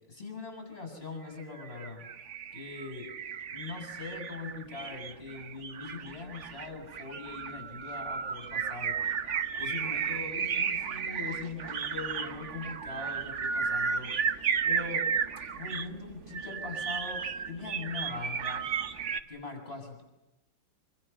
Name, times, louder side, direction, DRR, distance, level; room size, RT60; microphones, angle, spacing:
voice 1, 0.1-2.1 2.5-3.2 3.5-9.0 9.6-14.1 14.6-15.1 15.6-18.7 19.3-20.0, left 3 dB, 25° left, 5 dB, 7.3 m, -41 dB
sound 1, 1.4-19.2, right 6 dB, 50° right, 1.0 m, -34 dB
26.0 x 25.5 x 6.9 m, 0.95 s
omnidirectional pair, 2.4 m